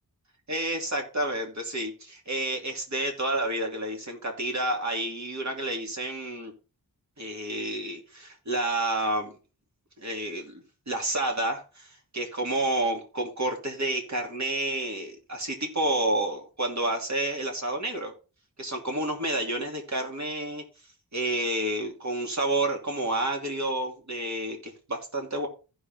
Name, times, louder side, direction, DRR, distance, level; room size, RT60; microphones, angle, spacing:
voice 1, 0.5-6.5 7.2-9.4 10.0-18.1 18.6-20.6 21.1-25.5, right 1 dB, 50° right, 2 dB, 2.7 m, -30 dB
15.0 x 6.1 x 3.6 m, 0.33 s
wide cardioid pair, 90°, 37 cm